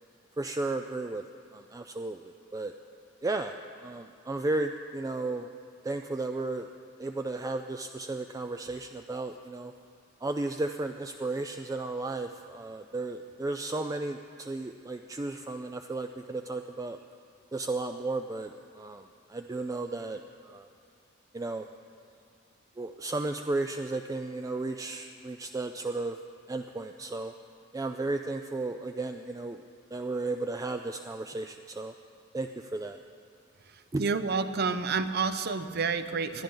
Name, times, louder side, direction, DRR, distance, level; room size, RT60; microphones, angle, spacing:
voice 1, 0.4-1.2 1.5-2.7 3.2-5.5 5.8-6.7 7.0-9.7 10.2-17.0 17.5-20.7 21.3-21.7 22.8-26.2 26.5-27.3 27.7-29.6 29.9-31.9 32.3-33.0 33.9-34.0, right 2 dB, 20° right, 6 dB, 0.3 m, -34 dB
voice 2, 34.0-36.4, right 5 dB, 55° right, 11 dB, 0.6 m, -29 dB
21.0 x 12.0 x 3.9 m, 2.3 s
head